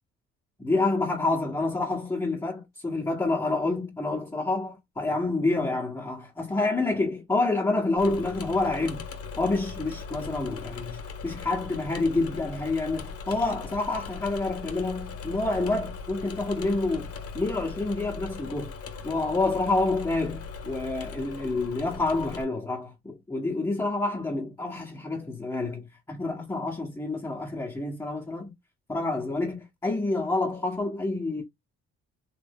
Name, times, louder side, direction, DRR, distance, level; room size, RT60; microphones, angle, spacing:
voice 1, 0.6-9.0 9.4-17.1 17.3-18.7 19.0-28.5 28.9-31.4, left 2 dB, 10° left, 1.1 m, -28 dB
Engine / Mechanisms, 8.0-22.4, left 5 dB, 50° left, 1.1 m, -39 dB
3.3 x 2.1 x 3.5 m
cardioid pair, 90°, 30 cm